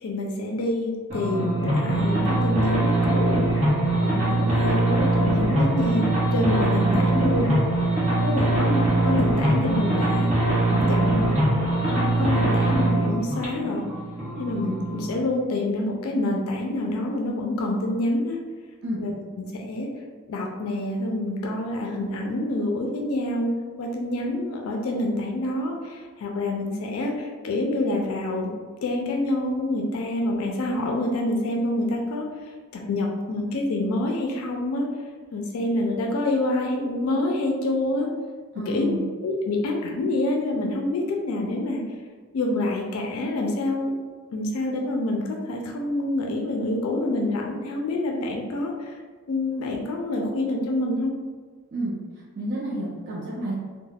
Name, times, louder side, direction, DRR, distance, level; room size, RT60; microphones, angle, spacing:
voice 1, 0.0-3.4 4.0-7.5 8.2-11.4 11.9-13.9 14.4-18.4 18.9-19.9 20.3-23.5 23.8-28.5 28.8-32.3 32.7-34.9 35.3-38.1 38.7-41.8 42.3-44.0 44.3-48.9 49.3-51.1, left 1 dB, 75° left, 0 dB, 0.4 m, -27 dB
sound 1, 1.1-15.2, right 2 dB, 30° right, 0.8 m, -22 dB
voice 2, 8.0-8.5 18.8-19.0 38.5-39.0 51.7-52.0 52.4-53.6, right 1 dB, 50° right, -6 dB, 0.4 m, -30 dB
2.3 x 2.1 x 3.2 m, 1.5 s
head